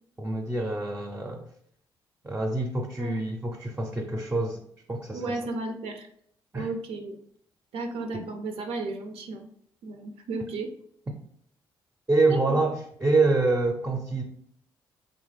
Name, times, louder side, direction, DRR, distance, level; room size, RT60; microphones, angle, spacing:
voice 1, 0.2-1.5 2.2-4.6 4.9-5.4 6.5-6.7 8.1-8.2 12.1-14.2, right 3 dB, 15° right, 2 dB, 0.4 m, -26 dB
voice 2, 5.1-6.1 6.5-7.2 7.7-9.5 9.8-10.7 12.3-12.6, right 3 dB, 80° right, 4 dB, 0.4 m, -34 dB
2.9 x 2.0 x 3.2 m, 0.67 s
supercardioid pair, 55°, 10 cm